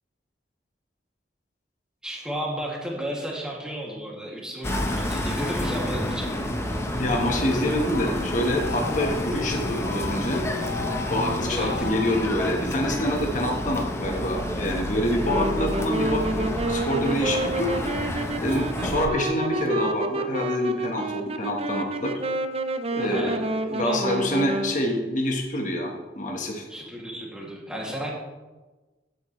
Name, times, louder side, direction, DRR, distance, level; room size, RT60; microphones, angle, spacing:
voice 1, 2.0-6.3 11.5-11.9 23.0-23.4 23.8-24.0 26.7-28.1, equal, 5° right, -4 dB, 2.5 m, -33 dB
sound 1, 4.6-19.1, left 1 dB, 15° left, 1.1 m, -29 dB
voice 2, 7.0-10.8 11.1-17.7 18.4-22.1 22.9-26.7, left 1 dB, 45° left, 1 dB, 1.5 m, -26 dB
sound 2, 7.9-12.6, left 5 dB, 75° left, 0.8 m, -36 dB
Wind instrument woodwind instrument, 15.2-24.8, right 1 dB, 35° right, 0.7 m, -29 dB
16.0 x 8.5 x 3.3 m, 1.2 s
head